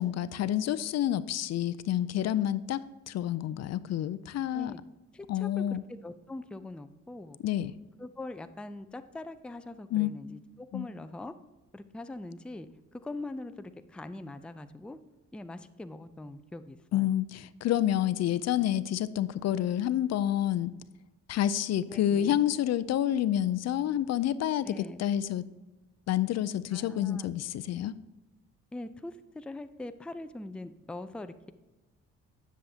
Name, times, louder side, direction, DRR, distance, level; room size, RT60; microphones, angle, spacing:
voice 1, 0.0-4.7 5.3-5.8 7.4-7.7 9.9-10.1 10.7-10.9 16.9-20.7 21.3-25.4 26.1-28.0, left 11 dB, 60° left, 15 dB, 0.4 m, -29 dB
voice 2, 5.1-5.6 5.9-7.4 8.0-11.3 11.7-15.0 15.3-17.2 21.9-22.3 24.6-25.0 26.7-27.3 28.7-31.5, left 2 dB, 5° left, 10 dB, 0.4 m, -42 dB
9.8 x 7.1 x 2.8 m, 1.1 s
cardioid pair, 90°, 30 cm